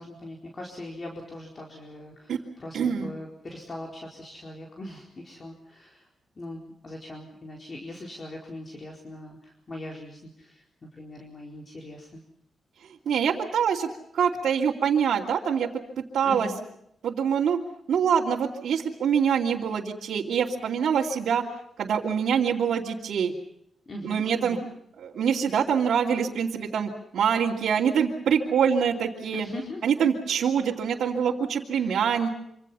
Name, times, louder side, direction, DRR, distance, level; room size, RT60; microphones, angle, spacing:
voice 1, 0.0-6.1 6.4-12.2 16.2-16.6 23.9-24.7 29.3-29.9 31.8-32.0, left 1 dB, 35° left, 0 dB, 4.4 m, -41 dB
voice 2, 2.7-3.1 12.8-15.7 16.0-16.5 17.0-17.6 17.9-21.4 21.8-23.3 24.0-24.6 25.0-29.5 29.8-32.3, right 7 dB, 80° right, -4 dB, 2.8 m, -25 dB
26.5 x 26.5 x 5.7 m, 0.73 s
cardioid pair, 105°, 0 cm